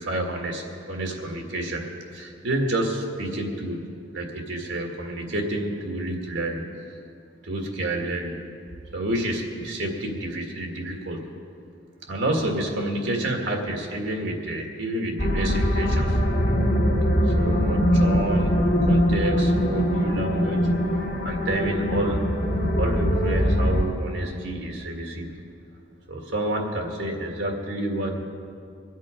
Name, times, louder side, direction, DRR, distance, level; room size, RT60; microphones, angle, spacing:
voice 1, 0.0-1.8 2.1-3.9 4.1-6.7 7.4-8.4 8.9-11.2 12.1-16.2 17.2-20.7 21.2-22.3 22.8-25.3 26.1-28.2, right 1 dB, 70° right, 1 dB, 1.9 m, -29 dB
sound 1, 15.2-23.9, equal, 45° left, 1.8 m, -22 dB
23.0 x 8.3 x 5.0 m, 2.4 s
head